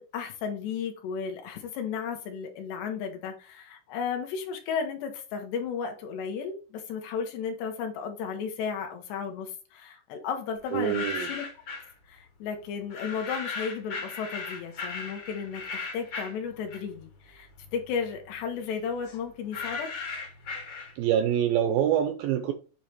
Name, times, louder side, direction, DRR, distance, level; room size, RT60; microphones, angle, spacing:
voice 1, 0.0-11.4 12.1-19.9, left 6 dB, 80° left, 3.4 m, -34 dB
sound 1, 10.7-11.9 12.9-17.1 17.5-21.2, left 4 dB, 55° left, 1.5 m, -37 dB
voice 2, 10.7-11.3 21.0-22.5, right 10 dB, 80° right, 2.1 m, -25 dB
9.1 x 3.3 x 4.5 m
omnidirectional pair, 4.9 m